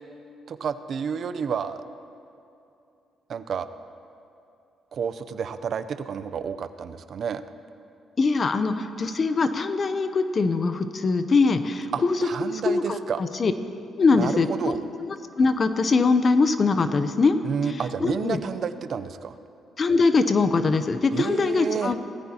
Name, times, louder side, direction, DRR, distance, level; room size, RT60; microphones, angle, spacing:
voice 1, 0.5-1.8 3.3-3.7 4.9-7.4 11.9-13.2 14.1-14.8 17.4-19.4 21.1-22.0, right 7 dB, 60° right, 12 dB, 0.6 m, -30 dB
voice 2, 8.2-13.5 14.0-14.8 15.0-17.4 18.0-18.4 19.8-22.0, left 4 dB, 40° left, 10 dB, 0.7 m, -22 dB
18.5 x 14.0 x 2.9 m, 2.7 s
cardioid pair, 90°, 0 cm